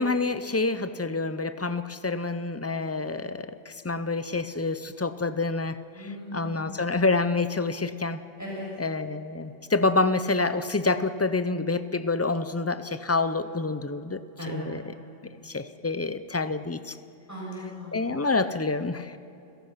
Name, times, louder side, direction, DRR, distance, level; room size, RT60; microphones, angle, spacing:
voice 1, 0.0-8.2 8.8-14.2 14.5-14.8 15.4-17.0 17.9-19.2, left 3 dB, 25° left, 12 dB, 0.3 m, -27 dB
voice 2, 5.9-6.7 8.4-8.7 14.4-14.7 17.3-18.1, left 1 dB, 10° right, -6 dB, 7.3 m, -37 dB
29.0 x 17.0 x 5.8 m, 2.9 s
omnidirectional pair, 1.3 m